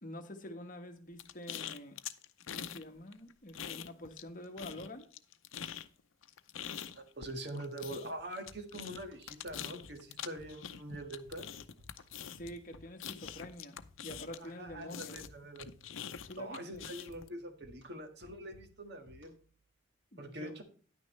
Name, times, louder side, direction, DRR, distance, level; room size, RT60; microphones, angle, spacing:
voice 1, 0.0-2.0 2.5-5.1 12.2-15.2 16.2-16.9 20.1-20.5, left 1 dB, 40° left, 6 dB, 1.3 m, -47 dB
sound 1, 1.2-2.8 3.1-4.3 4.6-14.6 14.9-17.3, left 9 dB, 85° left, 0.6 m, -44 dB
voice 2, 6.9-11.5 14.4-15.7 16.4-19.3 20.2-20.6, right 1 dB, 55° right, 5 dB, 1.7 m, -44 dB
sound 2, 8.5-19.6, left 1 dB, 85° right, 4.6 m, -61 dB
10.5 x 9.4 x 3.2 m, 0.43 s
head